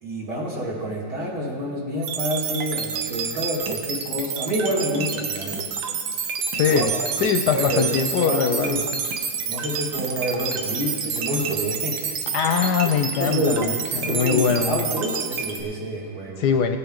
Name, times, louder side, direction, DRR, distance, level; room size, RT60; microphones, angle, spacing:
voice 1, 0.0-5.7 6.7-6.8 7.5-8.0 8.2-8.8 9.5-12.2 13.2-13.8 14.1-16.5, equal, 60° right, -5 dB, 2.8 m, -28 dB
sound 1, 2.0-15.6, right 6 dB, 80° right, 1.6 m, -28 dB
voice 2, 6.5-6.9 7.2-8.9 12.3-14.9 16.4-16.8, left 7 dB, 70° left, 6 dB, 1.0 m, -22 dB
18.0 x 8.0 x 3.8 m, 2.3 s
omnidirectional pair, 2.1 m